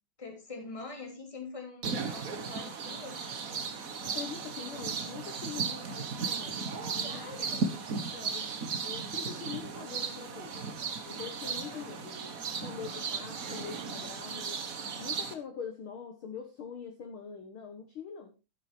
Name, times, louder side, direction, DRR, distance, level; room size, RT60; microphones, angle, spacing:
voice 1, 0.2-3.2 6.9-7.7 11.4-12.0, left 3 dB, 10° left, 2 dB, 2.6 m, -45 dB
sound 1, 1.8-15.3, right 5 dB, 70° right, 0.8 m, -36 dB
voice 2, 4.0-6.7 6.9-7.5 8.1-8.5 8.8-10.6 11.1-12.2 12.6-14.7 15.0-18.3, left 6 dB, 50° left, 4 dB, 1.8 m, -43 dB
12.0 x 8.0 x 4.4 m, 0.30 s
omnidirectional pair, 3.5 m